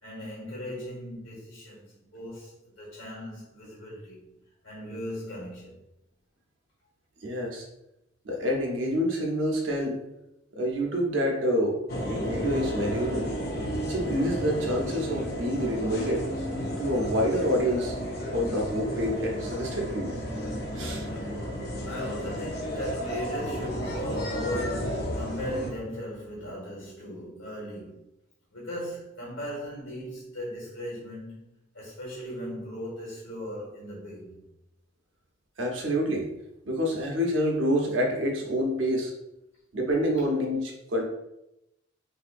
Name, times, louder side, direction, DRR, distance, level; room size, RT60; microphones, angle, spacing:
voice 1, 0.0-4.3 4.6-5.9 21.8-28.0 28.5-34.4 40.2-40.3, equal, 75° left, 1.3 m, -38 dB
voice 2, 7.2-7.6 8.2-10.0 10.6-11.8 12.1-13.3 13.8-16.2 16.8-17.9 18.3-20.1 20.7-21.1 35.6-36.3 36.7-39.1 39.7-41.0, equal, 70° right, 0.8 m, -27 dB
sound 1, 11.9-25.7, equal, 50° left, 0.6 m, -33 dB
4.1 x 2.7 x 2.5 m
head